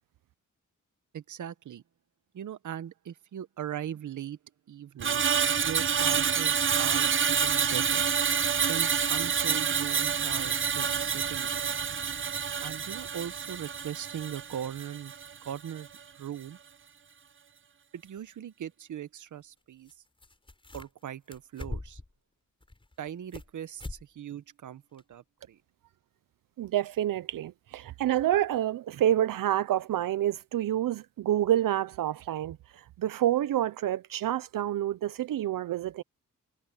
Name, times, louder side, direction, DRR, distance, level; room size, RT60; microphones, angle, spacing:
voice 1, 1.1-1.8 2.3-4.4 4.7-5.2 5.6-8.0 8.7-11.6 12.6-15.1 15.4-15.9 16.1-16.6 17.9-19.9 20.7-22.0 23.0-25.6, right 10 dB, 65° right, 0.9 m, -39 dB
Screech, 5.0-15.4 15.7-16.0, right 7 dB, 40° right, 0.8 m, -28 dB
sound 1, 18.2-18.3 19.9-20.0 20.2-21.0 21.3-22.1 22.6-23.5 23.8-24.0 24.4-24.5 25.0-25.1, left 2 dB, 15° left, 4.9 m, -41 dB
voice 2, 26.6-36.0, right 12 dB, 85° right, 0.6 m, -28 dB
wide cardioid pair, 145°, 32 cm